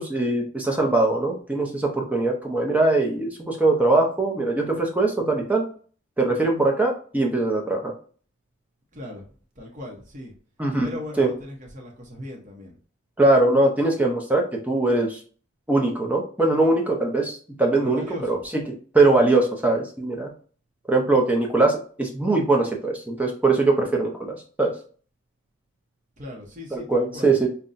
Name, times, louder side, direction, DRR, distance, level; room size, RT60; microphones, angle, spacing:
voice 1, 0.0-5.6 6.2-7.9 10.6-10.9 11.2-11.3 13.2-15.2 15.7-20.3 20.9-24.7 26.7-27.5, right 2 dB, 5° right, 0 dB, 0.6 m, -21 dB
voice 2, 9.6-10.3 10.8-12.7 17.7-18.4 26.2-27.3, left 1 dB, 35° right, 0 dB, 0.8 m, -38 dB
5.4 x 2.2 x 2.5 m, 0.42 s
head